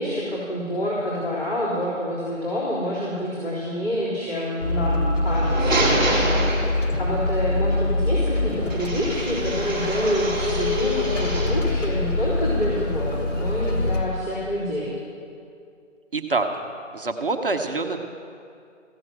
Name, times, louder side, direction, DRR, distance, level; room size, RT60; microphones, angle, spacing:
voice 1, 0.0-6.7 7.0-14.9, equal, 35° left, -11 dB, 3.7 m, -27 dB
sound 1, 4.6-14.0, left 2 dB, 70° left, 2.2 m, -24 dB
sound 2, 5.2-7.1 8.7-11.7, right 1 dB, 5° right, 1.2 m, -27 dB
voice 2, 16.1-16.5 16.9-18.0, right 3 dB, 45° right, 5 dB, 0.8 m, -25 dB
15.5 x 7.5 x 7.7 m, 2.4 s
figure-of-eight pair, 155°, 38 cm